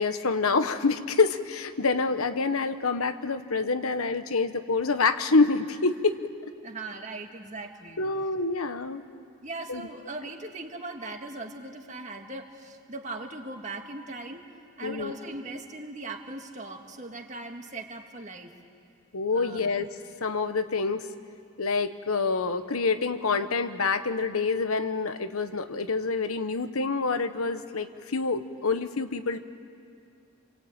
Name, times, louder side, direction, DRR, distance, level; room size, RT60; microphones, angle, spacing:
voice 1, 0.0-6.2 8.0-9.0 9.7-9.8 14.8-15.1 19.1-19.9 20.2-21.1 21.6-29.4, left 4 dB, 85° left, 9 dB, 1.1 m, -27 dB
voice 2, 6.6-8.0 9.4-14.4 14.8-18.5 19.3-19.7, right 2 dB, 35° right, 3 dB, 1.9 m, -39 dB
28.0 x 22.5 x 8.9 m, 2.4 s
head